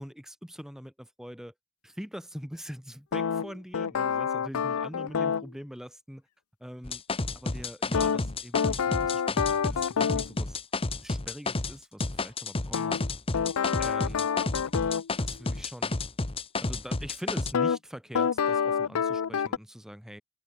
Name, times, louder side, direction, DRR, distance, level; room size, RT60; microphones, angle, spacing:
voice 1, 0.0-1.5 1.8-6.2 6.6-7.0 7.4-10.6 11.0-13.0 13.8-14.3 15.2-16.0 16.6-20.2, equal, ahead, 1.7 m, -43 dB
sound 1, 3.1-5.5 7.9-10.3 12.7-15.1 17.5-17.8 18.1-19.6, left 7 dB, 90° left, 0.5 m, -27 dB
sound 2, 6.8-11.7 12.0-17.5, left 3 dB, 25° left, 1.0 m, -31 dB
head